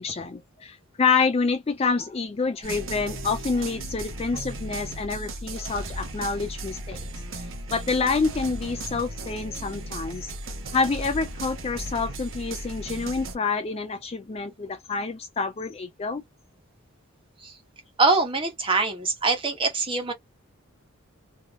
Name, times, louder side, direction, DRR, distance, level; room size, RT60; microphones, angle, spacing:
voice 1, 0.0-7.0 7.3-7.4 7.7-10.3 10.7-16.2, left 4 dB, 25° left, 0.3 m, -27 dB
sound 1, 2.6-13.4, right 1 dB, 65° right, 1.0 m, -36 dB
voice 2, 18.0-20.1, right 3 dB, 25° right, 1.1 m, -23 dB
3.4 x 2.7 x 2.4 m
head